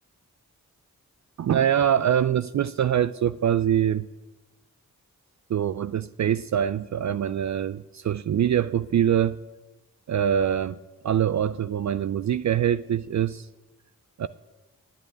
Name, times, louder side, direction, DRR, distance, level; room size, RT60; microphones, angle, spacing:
voice 1, 1.4-4.1 5.5-9.4 10.1-10.8 11.0-13.5 14.2-14.3, right 9 dB, 55° right, 14 dB, 0.4 m, -24 dB
9.2 x 8.5 x 9.7 m, 1.1 s
cardioid pair, 40°, 35 cm